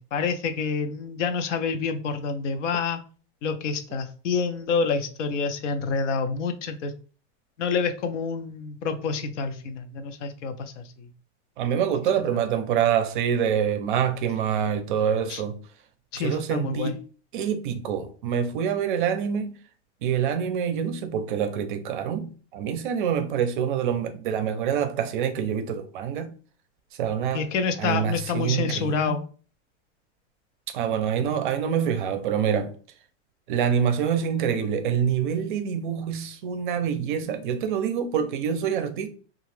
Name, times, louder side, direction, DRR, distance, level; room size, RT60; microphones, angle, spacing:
voice 1, 0.0-3.0 3.4-6.9 7.6-10.7 16.1-16.9 27.3-29.2, left 5 dB, 90° left, 0.7 m, -27 dB
voice 2, 11.6-15.6 16.2-17.0 17.3-19.6 20.0-26.3 27.0-27.5 27.8-29.2 30.7-32.8 33.5-39.1, right 8 dB, 45° right, 0.4 m, -26 dB
2.8 x 2.4 x 3.2 m
supercardioid pair, 175°, 35 cm